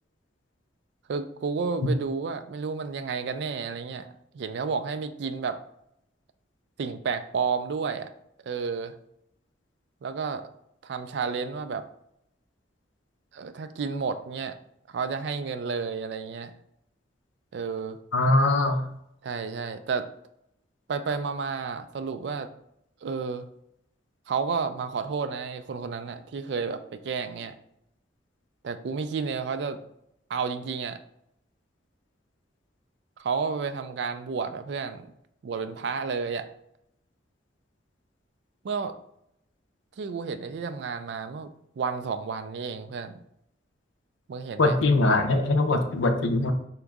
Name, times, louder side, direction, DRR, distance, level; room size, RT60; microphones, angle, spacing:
voice 1, 1.1-5.6 6.8-8.1 8.4-8.9 10.0-10.4 10.8-11.9 13.3-14.5 14.9-16.5 17.5-18.0 19.2-20.1 20.9-22.5 23.0-23.5 24.3-27.5 28.6-29.8 30.3-31.0 33.2-35.1 35.4-36.5 38.6-38.9 40.0-41.5 41.8-43.2 44.3-44.8, right 5 dB, 60° right, 10 dB, 0.3 m, -31 dB
voice 2, 18.1-18.9 44.6-46.5, left 2 dB, 80° left, 5 dB, 0.5 m, -22 dB
3.5 x 2.9 x 3.5 m, 0.75 s
head